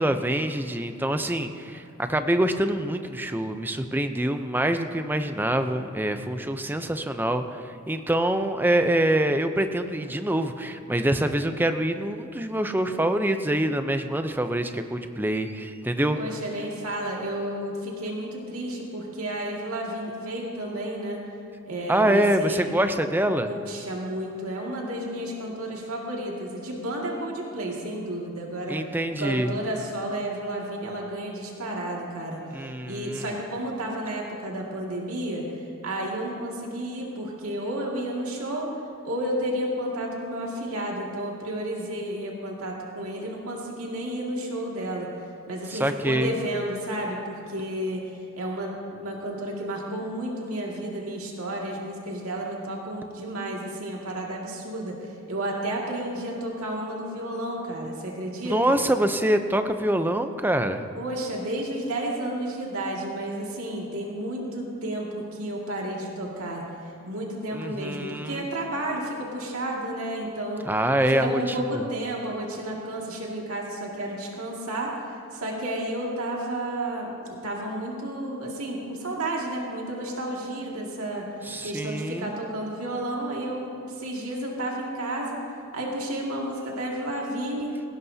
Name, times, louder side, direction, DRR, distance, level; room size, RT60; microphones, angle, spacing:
voice 1, 0.0-16.2 21.9-23.5 28.7-29.5 32.5-33.3 45.7-46.3 58.5-60.8 67.5-68.5 70.6-71.8 81.4-82.3, right 1 dB, 10° right, 8 dB, 0.6 m, -25 dB
voice 2, 16.1-21.2 21.7-22.7 23.5-28.8 29.2-32.4 32.9-35.5 35.8-38.7 39.0-45.1 45.5-48.0 48.4-58.8 60.9-66.6 67.1-70.7 71.1-74.9 75.3-81.3 81.6-85.4 85.7-87.7, right 1 dB, 75° right, -2 dB, 2.2 m, -31 dB
18.5 x 16.5 x 2.8 m, 2.6 s
head